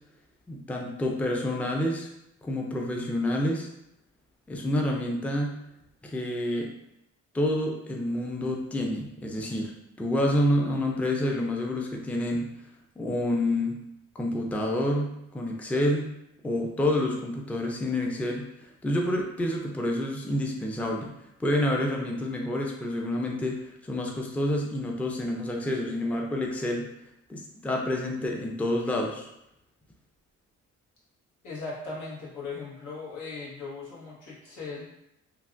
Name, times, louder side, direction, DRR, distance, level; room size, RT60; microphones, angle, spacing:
voice 1, 0.5-2.1 2.4-3.7 4.5-5.6 6.0-6.7 7.3-9.7 10.0-12.5 13.0-13.8 14.2-16.1 16.4-18.4 18.8-21.1 21.4-26.9 27.3-29.3, left 1 dB, 5° left, 0 dB, 0.4 m, -28 dB
voice 2, 31.4-34.9, left 4 dB, 90° left, -7 dB, 1.3 m, -38 dB
3.3 x 2.4 x 2.5 m, 0.83 s
cardioid pair, 90°, 30 cm